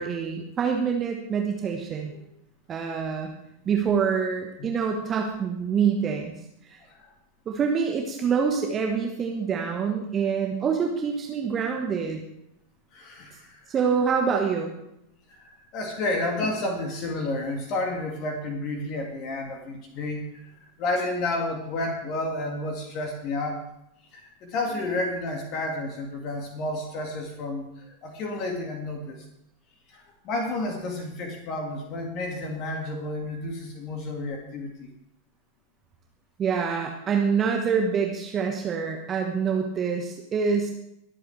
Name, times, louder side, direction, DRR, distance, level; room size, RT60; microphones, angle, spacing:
voice 1, 0.0-2.1 2.7-3.3 3.6-6.3 6.7-6.8 7.5-12.2 13.7-14.7 36.4-40.7, right 6 dB, 25° right, 2 dB, 1.3 m, -26 dB
voice 2, 12.9-13.7 15.3-20.5 20.8-23.6 24.1-29.2 29.9-34.9, left 2 dB, 40° left, 3 dB, 2.1 m, -31 dB
25.5 x 8.6 x 3.4 m, 0.81 s
figure-of-eight pair, 90°, 0 cm